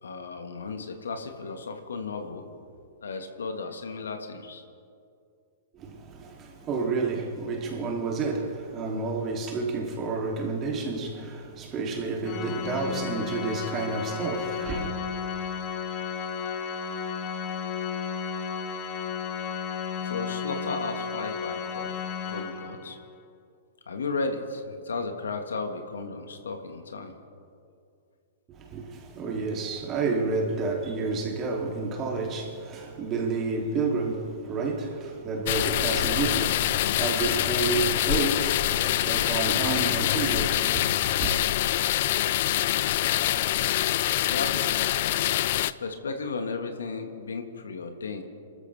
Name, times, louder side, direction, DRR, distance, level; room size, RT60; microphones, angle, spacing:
voice 1, 0.0-2.4 3.0-4.6 19.8-21.9 22.2-23.0 23.9-27.1 44.1-44.7 45.6-48.2, left 4 dB, 80° left, 1.7 m, -34 dB
voice 2, 5.7-14.9 28.5-41.4, right 4 dB, 30° right, 2.9 m, -30 dB
Organ, 12.2-23.1, left 6 dB, 40° left, 1.2 m, -33 dB
sound 1, 35.5-45.7, left 14 dB, 55° left, 0.4 m, -25 dB
29.0 x 13.5 x 3.5 m
hypercardioid pair, 115°, 0 cm